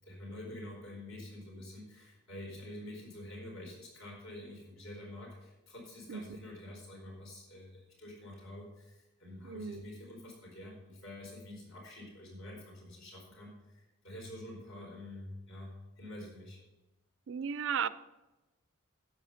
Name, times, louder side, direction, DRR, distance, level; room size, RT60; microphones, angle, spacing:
voice 1, 0.0-16.6, left 1 dB, 70° left, -2 dB, 4.6 m, -47 dB
voice 2, 6.1-6.4 9.4-9.9 17.3-17.9, right 7 dB, 60° right, 16 dB, 0.4 m, -35 dB
10.0 x 7.9 x 5.6 m, 1.1 s
head